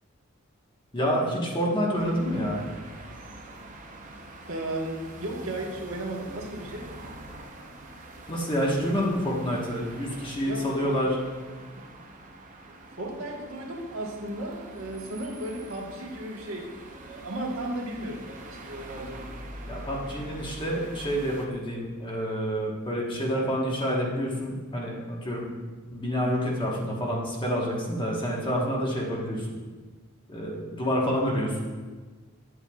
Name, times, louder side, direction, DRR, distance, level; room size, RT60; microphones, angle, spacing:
voice 1, 0.9-2.6 8.3-11.2 19.7-25.5 25.9-29.5 30.3-31.6, equal, 25° left, -3 dB, 1.2 m, -28 dB
sound 1, 2.0-21.5, right 1 dB, 40° right, 0.7 m, -44 dB
voice 2, 4.5-6.8 10.4-11.0 11.8-11.9 13.0-19.3, right 1 dB, 80° right, -1 dB, 1.3 m, -35 dB
8.8 x 7.9 x 2.3 m, 1.4 s
head